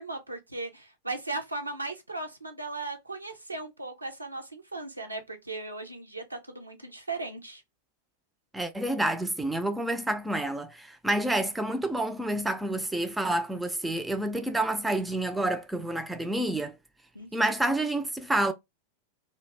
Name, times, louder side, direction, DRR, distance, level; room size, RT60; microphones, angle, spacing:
voice 1, 0.0-7.6 17.1-17.5, right 2 dB, 85° right, 0.5 m, -37 dB
voice 2, 8.5-16.8 17.3-18.5, right 1 dB, 5° right, 0.3 m, -28 dB
2.2 x 2.1 x 3.1 m
figure-of-eight pair, 90°, 0 cm